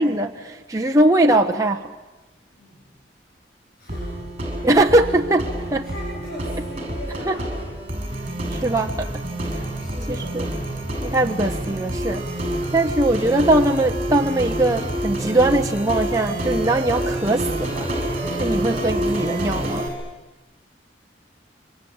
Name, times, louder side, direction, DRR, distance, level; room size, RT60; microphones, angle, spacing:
voice 1, 0.0-1.9 4.6-5.9 7.3-7.4 8.5-9.1 10.1-10.4 11.0-12.3 12.7-17.9 18.4-19.8, right 2 dB, 20° right, 1.1 m, -20 dB
voice 2, 3.8-4.2 5.8-7.6 9.4-10.4, equal, 50° left, 7.8 m, -39 dB
sound 1, 3.9-19.9, right 1 dB, 35° right, 6.8 m, -27 dB
27.5 x 25.0 x 8.8 m
head